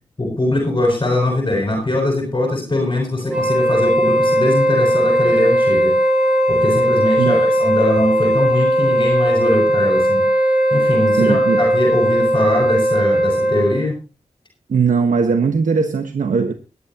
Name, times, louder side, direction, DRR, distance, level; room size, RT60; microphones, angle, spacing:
voice 1, 0.2-5.9 6.5-10.3 10.7-14.0, left 1 dB, 35° left, 1 dB, 5.9 m, -21 dB
Wind instrument woodwind instrument, 3.2-13.8, right 1 dB, 10° right, 3.3 m, -17 dB
voice 2, 11.2-11.6 14.7-16.5, right 5 dB, 90° right, 6 dB, 1.4 m, -18 dB
22.5 x 11.0 x 2.9 m, 0.30 s
wide cardioid pair, 110°, 13 cm